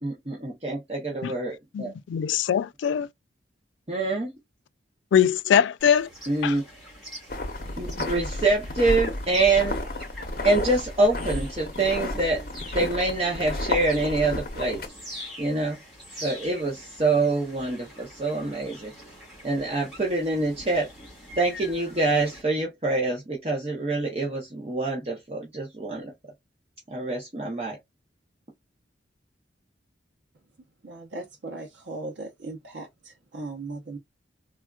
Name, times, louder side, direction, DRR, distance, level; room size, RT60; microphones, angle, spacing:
voice 1, 0.0-1.9 3.9-4.3 6.3-6.6 7.8-9.8 10.4-15.0 15.4-15.8 16.2-18.9 19.4-20.9 21.4-26.1 26.9-27.8, right 2 dB, 30° right, 0.8 m, -26 dB
voice 2, 1.7-3.1 5.1-6.1 6.4-6.6, left 8 dB, 80° left, 0.3 m, -22 dB
sound 1, 5.8-22.4, equal, ahead, 2.0 m, -44 dB
sound 2, 7.3-14.9, left 2 dB, 50° left, 0.8 m, -32 dB
voice 3, 30.8-34.0, right 2 dB, 70° right, 0.8 m, -38 dB
3.4 x 2.4 x 2.3 m
head